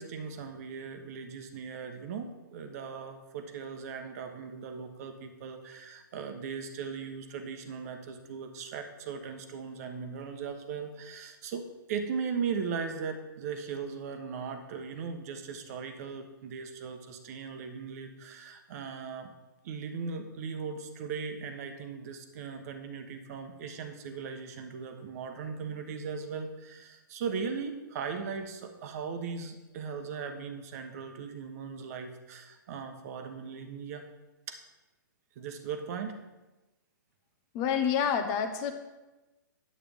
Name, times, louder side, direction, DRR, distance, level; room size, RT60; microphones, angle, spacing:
voice 1, 0.0-19.3 19.6-34.0 34.5-34.6 35.4-36.2, right 6 dB, 50° right, 6 dB, 1.1 m, -38 dB
voice 2, 37.5-38.7, left 7 dB, 35° left, 7 dB, 0.8 m, -28 dB
8.9 x 8.5 x 3.5 m, 1.1 s
hypercardioid pair, 130°, 11 cm